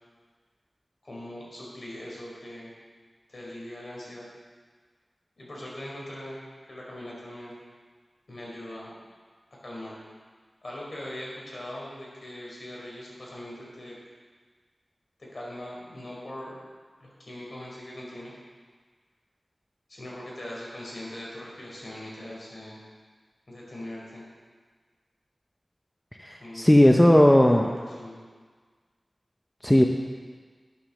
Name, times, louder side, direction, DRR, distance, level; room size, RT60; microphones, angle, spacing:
voice 1, 1.0-2.7 3.3-4.3 5.4-6.4 6.7-7.5 8.3-9.0 9.6-10.0 10.6-14.0 15.2-16.5 17.0-18.3 19.9-22.8 23.5-24.2 26.4-28.2, left 1 dB, 55° left, -4 dB, 4.2 m, -40 dB
voice 2, 26.2-27.6 29.6-29.8, left 1 dB, 10° left, 2 dB, 0.7 m, -17 dB
9.3 x 9.0 x 6.5 m, 1.5 s
wide cardioid pair, 85°, 0 cm